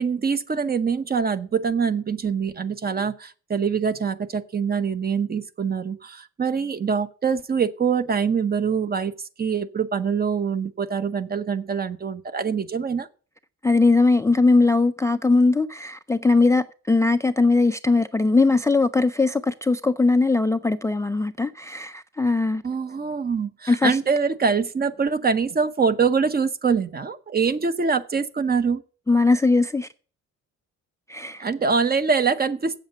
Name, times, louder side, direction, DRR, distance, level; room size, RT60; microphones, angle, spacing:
voice 1, 0.0-9.1 9.4-13.1 22.6-28.8 31.4-32.8, right 5 dB, 30° right, 0.9 m, -24 dB
voice 2, 13.6-22.6 23.7-24.0 29.1-29.9 31.1-31.4, left 3 dB, 10° left, 0.4 m, -20 dB
8.0 x 7.3 x 6.5 m
cardioid pair, 90°, 30 cm